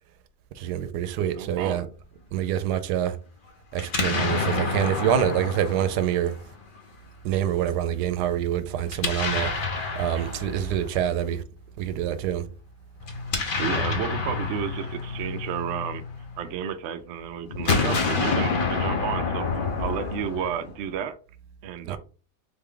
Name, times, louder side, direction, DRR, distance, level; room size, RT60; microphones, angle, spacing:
voice 1, 0.6-1.8 2.3-3.2 3.7-6.3 7.2-9.7 10.0-11.4 11.8-12.5 21.9-22.0, right 10 dB, 85° right, 1.2 m, -26 dB
voice 2, 1.2-1.9 10.1-10.3 13.6-16.0 16.4-19.5 19.8-21.2 21.6-22.0, right 8 dB, 65° right, 0.7 m, -32 dB
Explosion, 3.8-6.8 8.9-11.1 13.0-16.4 17.5-20.9, left 4 dB, 45° left, 0.8 m, -28 dB
4.0 x 3.4 x 3.6 m
omnidirectional pair, 1.7 m